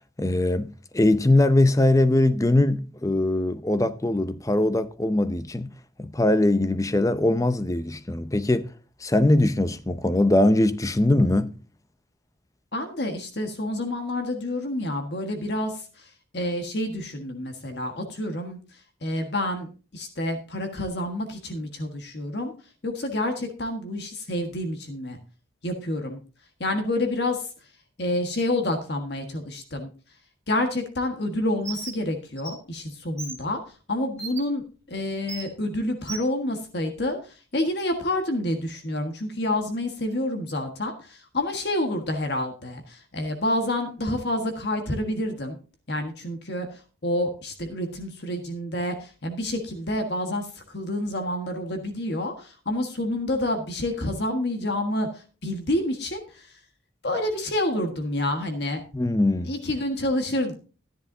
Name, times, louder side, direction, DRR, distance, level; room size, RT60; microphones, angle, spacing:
voice 1, 0.2-5.7 6.0-8.7 9.0-11.5 58.9-59.5, left 1 dB, 15° left, 0.6 m, -21 dB
voice 2, 12.7-18.6 19.0-22.5 22.8-25.2 25.6-26.2 26.6-27.5 28.0-29.9 30.5-33.6 33.9-45.6 45.9-56.5 57.0-58.8 59.4-60.5, left 1 dB, 55° left, 1.5 m, -28 dB
Bird, 31.6-31.9 32.4-32.5 33.2-33.3 34.2-34.4 35.3-35.4 36.1-36.2, right 5 dB, 15° right, 2.9 m, -35 dB
14.0 x 10.5 x 2.7 m
head